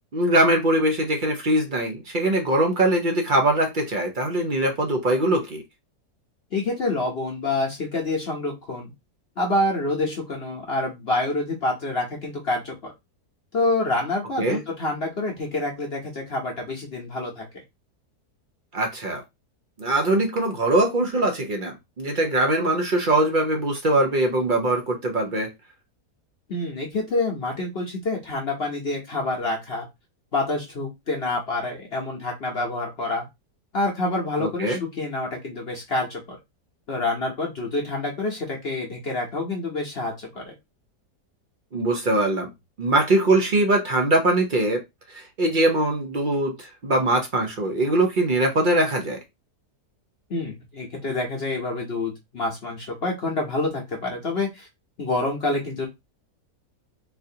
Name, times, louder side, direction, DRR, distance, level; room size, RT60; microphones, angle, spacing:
voice 1, 0.1-5.6 14.4-14.6 18.7-19.2 19.8-25.5 34.4-34.8 41.7-42.5 42.8-44.8 45.1-49.2, right 1 dB, 60° right, 2 dB, 0.5 m, -22 dB
voice 2, 6.5-8.9 9.4-12.9 13.5-17.5 26.5-29.9 30.3-33.2 33.7-36.4 36.9-40.5 50.3-54.7 55.0-55.9, left 2 dB, 50° left, 0 dB, 0.8 m, -27 dB
4.1 x 2.6 x 2.7 m, 0.21 s
omnidirectional pair, 1.8 m